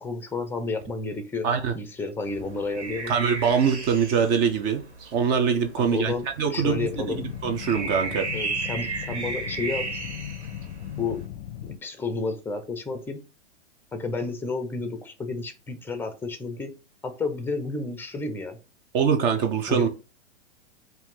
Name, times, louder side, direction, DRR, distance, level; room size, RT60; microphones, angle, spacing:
voice 1, 0.0-1.5 1.7-3.1 5.8-7.3 8.3-10.0 11.0-11.2 11.8-13.2 13.9-16.7 17.0-18.6 19.7-19.9, left 3 dB, 5° left, 8 dB, 0.6 m, -31 dB
sound 1, 2.2-11.2, right 3 dB, 75° right, 1.7 m, -35 dB
voice 2, 3.1-8.3 18.9-19.9, right 6 dB, 30° right, 6 dB, 0.7 m, -24 dB
sound 2, 6.6-11.8, left 11 dB, 50° left, 0.5 m, -38 dB
4.5 x 2.7 x 3.8 m, 0.31 s
hypercardioid pair, 120°, 34 cm